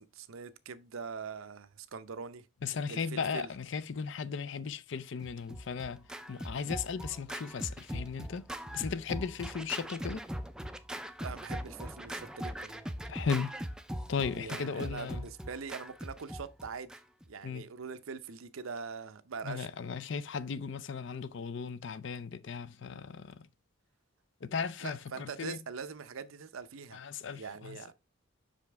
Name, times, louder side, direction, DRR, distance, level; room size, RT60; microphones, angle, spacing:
voice 1, 0.1-2.5 2.9-3.5 11.2-12.7 14.3-17.0 17.3-19.7 24.8-27.0 27.4-27.9, right 5 dB, 75° right, 0.6 m, -43 dB
voice 2, 2.6-6.0 6.3-8.5 8.7-10.3 13.1-13.5 14.1-15.2 17.4-17.6 19.4-23.4 24.4-25.6 26.9-27.9, left 6 dB, 60° left, 0.4 m, -36 dB
Scratching (performance technique), 5.2-17.3, equal, 5° right, 0.4 m, -41 dB
5.8 x 5.1 x 3.4 m
head